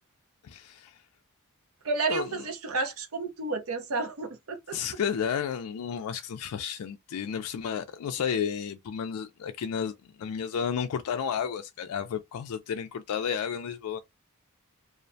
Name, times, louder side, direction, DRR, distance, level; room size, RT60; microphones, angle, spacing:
voice 1, 0.4-1.0 2.1-2.3 4.7-14.0, left 7 dB, 80° left, 0.4 m, -32 dB
voice 2, 1.8-4.8, right 3 dB, 70° right, 0.7 m, -31 dB
2.5 x 2.0 x 2.6 m
head